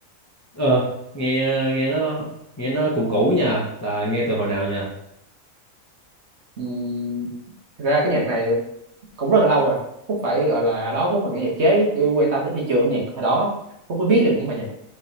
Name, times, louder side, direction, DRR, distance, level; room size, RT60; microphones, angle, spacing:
voice 1, 0.5-0.9 1.1-2.3 2.6-4.9, right 1 dB, 20° left, -5 dB, 0.5 m, -22 dB
voice 2, 6.6-7.3 7.8-8.6 9.2-9.8 10.1-13.5 13.9-14.7, right 2 dB, 55° right, -4 dB, 1.2 m, -21 dB
4.3 x 3.5 x 2.7 m, 0.78 s
omnidirectional pair, 1.4 m